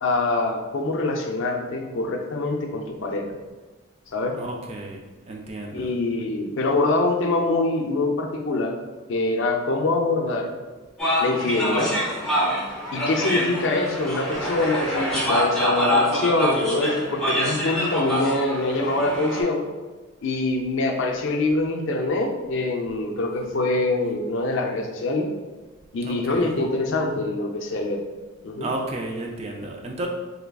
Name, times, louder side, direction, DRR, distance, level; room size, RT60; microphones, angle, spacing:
voice 1, 0.0-3.3 4.1-4.4 5.7-8.8 9.1-10.5 11.2-11.9 12.9-19.7 20.2-25.3 25.9-28.0 28.4-28.7, left 2 dB, 60° left, 2 dB, 0.5 m, -24 dB
voice 2, 4.4-5.0 5.3-5.9 26.0-26.6 28.6-30.1, right 2 dB, 30° right, 1 dB, 0.3 m, -32 dB
sound 1, 11.0-19.4, equal, 5° left, 0.7 m, -25 dB
3.5 x 3.2 x 2.2 m, 1.2 s
head